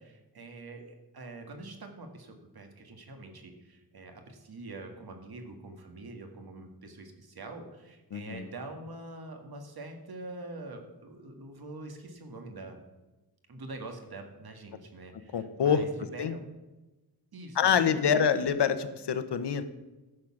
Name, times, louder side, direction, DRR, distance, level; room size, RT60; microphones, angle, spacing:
voice 1, 0.0-12.8 13.5-16.5 17.3-18.4, right 2 dB, 65° right, 4 dB, 1.8 m, -44 dB
voice 2, 8.1-8.4 15.3-15.8 16.2-16.3 17.6-19.6, left 7 dB, 85° left, 11 dB, 0.9 m, -26 dB
12.0 x 6.6 x 5.9 m, 1.1 s
wide cardioid pair, 120°, 40 cm